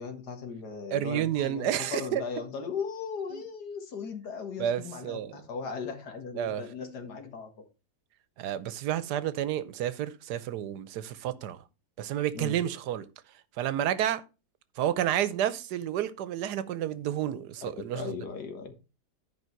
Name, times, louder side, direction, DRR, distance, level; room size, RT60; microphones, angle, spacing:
voice 1, 0.0-7.5 12.3-12.6 17.9-18.7, left 5 dB, 80° left, 2.2 m, -37 dB
voice 2, 0.9-2.2 3.3-3.4 4.6-5.5 6.3-6.6 8.4-11.7 12.0-14.2 14.7-18.2, right 11 dB, 80° right, 1.3 m, -30 dB
11.0 x 5.2 x 4.5 m
omnidirectional pair, 1.7 m